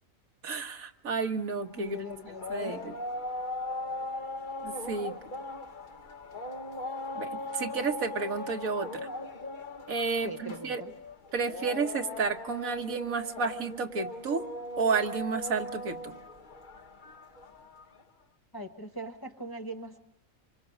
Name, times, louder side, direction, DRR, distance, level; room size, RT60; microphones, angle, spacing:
voice 1, 0.4-2.0 2.5-2.9 4.6-5.2 7.2-9.1 9.9-10.8 11.3-14.5 14.8-16.1, right 4 dB, 75° right, 5 dB, 1.8 m, -31 dB
sound 1, 1.7-18.0, left 2 dB, 40° left, 1.2 m, -39 dB
voice 2, 1.7-2.7 10.2-10.9 18.5-20.0, equal, 15° left, 3 dB, 1.0 m, -40 dB
26.0 x 24.0 x 6.3 m, 0.88 s
omnidirectional pair, 1.4 m